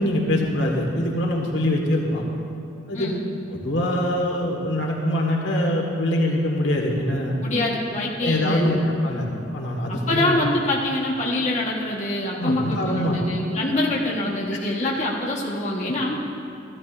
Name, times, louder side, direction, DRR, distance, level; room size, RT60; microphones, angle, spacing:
voice 1, 0.0-2.2 2.9-3.1 3.5-7.4 8.2-8.7 9.0-9.2 9.5-10.4 12.3-13.2 15.8-15.9, left 1 dB, 75° left, 0 dB, 1.6 m, -23 dB
voice 2, 7.4-8.8 9.9-16.2, left 1 dB, 40° left, -3 dB, 1.3 m, -25 dB
15.0 x 13.0 x 2.6 m, 2.5 s
head